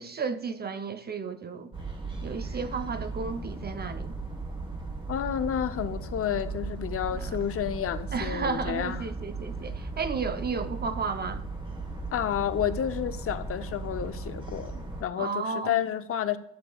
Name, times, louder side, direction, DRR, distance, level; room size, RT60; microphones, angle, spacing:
voice 1, 0.0-1.7 2.2-4.2 7.1-7.3 8.1-11.4 15.2-15.7, right 5 dB, 35° right, 0.5 m, -33 dB
sound 1, 1.7-15.0, right 3 dB, 15° right, 1.2 m, -37 dB
voice 2, 5.1-9.1 12.1-16.4, left 9 dB, 50° left, 0.6 m, -30 dB
13.0 x 6.8 x 2.3 m
cardioid pair, 90°, 30 cm